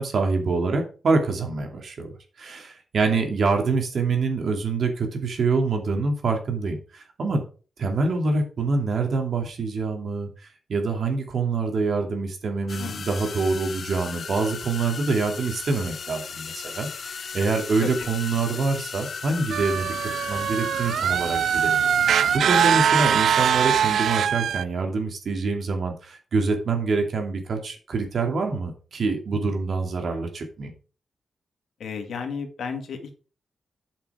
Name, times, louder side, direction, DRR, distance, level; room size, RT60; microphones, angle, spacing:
voice 1, 0.0-2.1 2.4-7.4 7.8-10.3 10.7-30.7, right 4 dB, 60° right, 4 dB, 2.5 m, -26 dB
sound 1, 12.7-22.4, left 6 dB, 55° left, 0.5 m, -36 dB
sound 2, 19.5-24.6, right 8 dB, 90° right, 0.3 m, -22 dB
voice 2, 31.8-33.2, left 6 dB, 85° left, 4 dB, 2.1 m, -33 dB
8.5 x 6.0 x 4.9 m, 0.37 s
wide cardioid pair, 115°, 0 cm